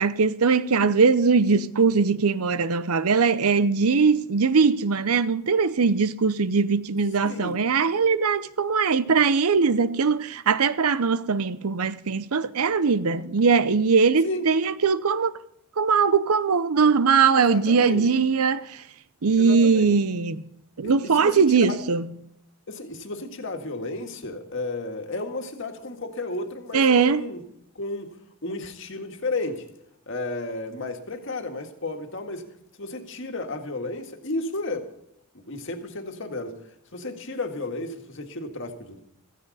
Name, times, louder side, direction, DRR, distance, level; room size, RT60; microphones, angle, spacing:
voice 1, 0.0-15.3 15.8-18.8 19.2-20.4 20.8-22.1 26.7-27.3, right 5 dB, 80° right, 0.7 m, -21 dB
voice 2, 7.2-7.6 14.2-14.5 17.4-18.0 19.4-19.9 20.8-21.8 22.7-27.4 27.8-28.1 28.4-29.6 30.1-32.5 32.8-34.9 35.3-36.6 36.9-39.0, left 2 dB, 55° left, 1.8 m, -33 dB
16.0 x 14.5 x 4.1 m
head